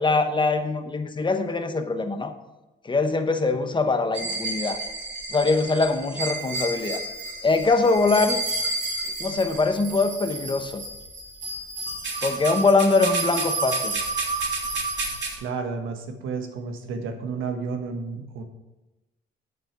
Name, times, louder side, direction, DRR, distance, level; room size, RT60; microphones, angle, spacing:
voice 1, 0.0-2.3 2.8-4.8 5.3-7.0 7.4-8.4 9.2-10.8 12.2-13.9, left 3 dB, 25° left, 7 dB, 1.1 m, -23 dB
sound 1, 4.1-15.3, right 2 dB, 65° right, 3.0 m, -30 dB
voice 2, 15.4-18.4, right 4 dB, 85° right, 5 dB, 1.4 m, -31 dB
8.8 x 6.8 x 5.9 m, 1.1 s
cardioid pair, 90°, 20 cm